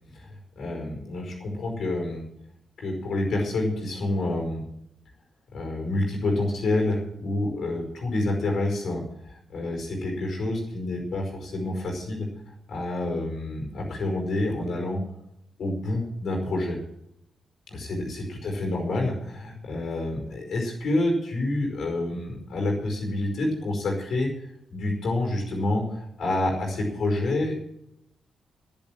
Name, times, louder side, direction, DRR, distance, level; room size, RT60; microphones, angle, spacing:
voice 1, 0.5-2.2 2.8-4.6 5.5-12.3 12.7-15.0 15.6-16.8 17.7-24.3 24.7-27.7, left 2 dB, 65° left, 2 dB, 5.1 m, -28 dB
11.0 x 11.0 x 7.6 m, 0.79 s
wide cardioid pair, 135°, 0 cm